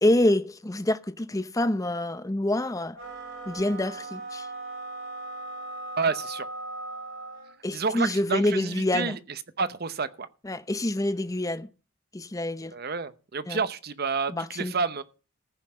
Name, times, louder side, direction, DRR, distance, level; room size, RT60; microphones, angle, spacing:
voice 1, 0.0-3.0 3.5-4.5 7.6-9.2 10.4-11.7 12.1-12.7 13.5-13.6 14.3-14.7, left 1 dB, 15° left, 0.6 m, -26 dB
sound 1, 2.9-7.6, right 2 dB, 65° right, 7.4 m, -38 dB
voice 2, 6.0-6.4 7.7-9.2 9.6-10.3 12.7-15.0, right 4 dB, 50° right, 0.8 m, -29 dB
14.5 x 5.8 x 7.5 m
head